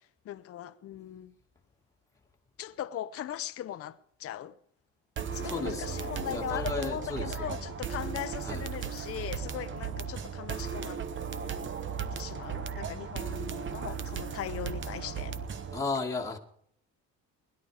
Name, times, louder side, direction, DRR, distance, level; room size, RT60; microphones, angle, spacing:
voice 1, 0.2-1.3 2.6-4.5 5.3-11.0 12.1-15.4, left 11 dB, 50° left, 0.8 m, -39 dB
sound 1, 5.2-15.8, right 7 dB, 40° right, 1.0 m, -36 dB
voice 2, 5.4-7.7 8.4-8.7 15.7-16.4, left 3 dB, 10° left, 2.1 m, -35 dB
19.5 x 11.5 x 4.9 m
cardioid pair, 130°, 31 cm